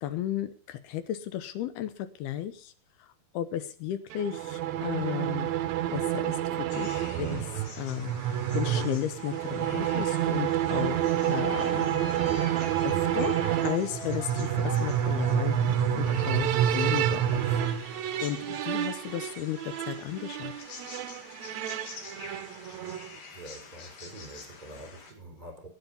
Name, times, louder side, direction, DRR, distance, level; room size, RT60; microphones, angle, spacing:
voice 1, 0.0-2.7 3.0-5.5 5.9-12.0 12.8-13.3 13.6-17.6 18.2-20.5, left 11 dB, 80° left, 12 dB, 2.9 m, -34 dB
sound 1, 4.1-23.2, right 11 dB, 75° right, 1.7 m, -29 dB
sound 2, 6.7-25.1, left 5 dB, 65° left, 3.5 m, -48 dB
sound 3, 9.6-15.7, left 1 dB, 30° left, 5.0 m, -41 dB
voice 2, 23.3-25.7, right 1 dB, 10° right, 4 dB, 3.6 m, -46 dB
19.0 x 9.1 x 5.4 m, 0.40 s
omnidirectional pair, 4.5 m